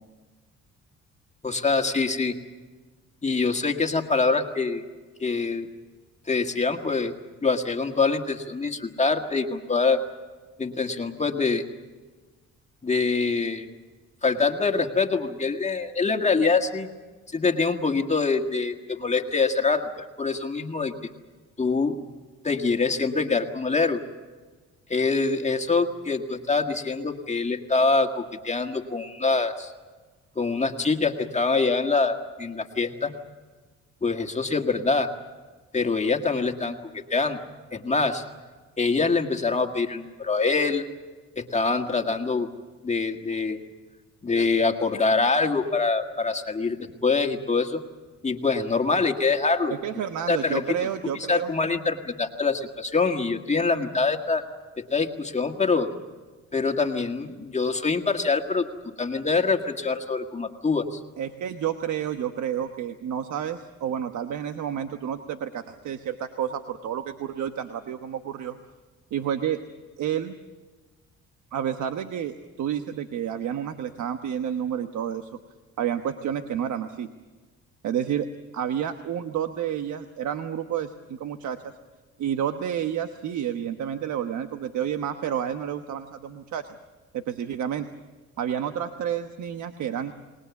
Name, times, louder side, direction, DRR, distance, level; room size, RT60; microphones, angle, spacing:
voice 1, 1.4-2.4 3.2-4.8 5.2-5.7 6.3-7.1 7.4-10.0 10.6-11.6 12.8-13.7 14.2-16.9 17.3-20.9 21.6-22.0 22.4-24.0 24.9-29.7 30.3-33.1 34.0-35.1 35.7-37.4 37.7-38.2 38.8-40.8 41.3-42.5 42.8-43.6 44.2-47.8 48.2-49.7 50.3-50.6 51.3-54.4 54.8-55.9 56.5-58.6 59.0-61.0, left 4 dB, 25° left, 4 dB, 1.8 m, -24 dB
voice 2, 49.7-51.5 61.2-68.6 69.1-69.6 70.0-70.3 71.5-75.3 75.8-77.1 77.8-78.3 78.5-81.7 82.2-86.6 87.1-87.9 88.4-90.1, right 9 dB, 75° right, 8 dB, 1.2 m, -30 dB
29.5 x 19.5 x 7.1 m, 1.3 s
cardioid pair, 90°, 30 cm